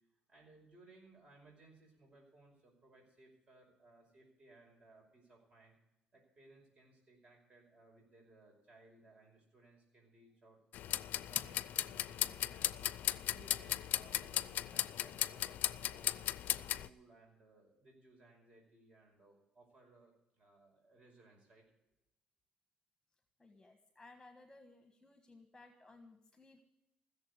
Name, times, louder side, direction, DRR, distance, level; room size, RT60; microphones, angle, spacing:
voice 1, 0.3-5.8 6.1-10.6 11.3-12.9 13.3-21.6, right 2 dB, 40° right, 0 dB, 5.3 m, -63 dB
sound 1, 10.7-16.9, left 12 dB, 70° left, 0.5 m, -37 dB
voice 2, 23.4-26.6, left 3 dB, 10° left, 6 dB, 1.4 m, -59 dB
15.5 x 7.1 x 9.7 m, 0.87 s
cardioid pair, 110°, 3 cm